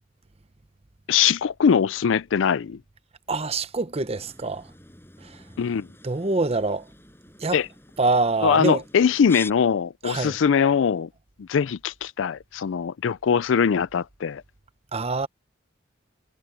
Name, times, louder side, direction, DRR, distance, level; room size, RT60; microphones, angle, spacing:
voice 1, 1.1-2.8 5.6-5.9 7.5-7.7 8.4-11.1 11.4-14.4, left 7 dB, 75° left, 0.4 m, -22 dB
voice 2, 3.3-4.6 5.2-5.4 6.0-6.8 7.4-7.6 8.0-8.8 10.0-10.4 14.9-15.3, right 3 dB, 30° right, 0.8 m, -25 dB
sound 1, 4.1-9.5, left 2 dB, 10° left, 8.0 m, -45 dB
head